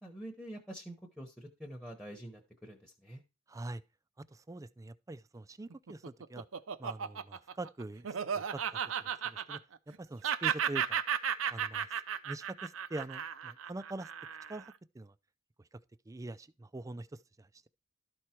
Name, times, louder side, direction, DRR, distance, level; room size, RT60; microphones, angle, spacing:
voice 1, 0.0-3.2, right 1 dB, ahead, 0.9 m, -46 dB
voice 2, 3.5-3.8 4.2-6.5 6.8-9.6 9.9-11.0 11.5-11.9 12.2-14.1 14.5-15.1 16.1-17.7, right 2 dB, 15° right, 0.4 m, -44 dB
Laughter, 5.7-10.0 10.2-14.7, right 8 dB, 85° right, 0.6 m, -34 dB
12.5 x 4.7 x 4.4 m
head